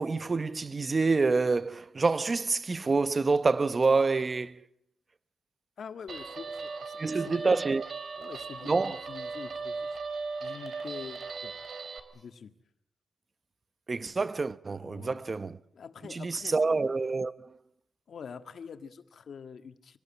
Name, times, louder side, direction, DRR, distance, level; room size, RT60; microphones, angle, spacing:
voice 1, 0.0-4.6 7.0-7.8 8.6-9.0 13.9-15.6 16.1-17.5, right 4 dB, 35° right, 0.9 m, -27 dB
voice 2, 5.8-7.7 8.2-10.0 10.4-11.5 12.1-12.6 14.8-15.2 15.7-16.6 18.1-20.0, left 6 dB, 65° left, 1.8 m, -45 dB
Guitar, 6.1-12.0, right 4 dB, 60° right, 3.5 m, -38 dB
25.5 x 19.0 x 8.7 m
cardioid pair, 100°, 0 cm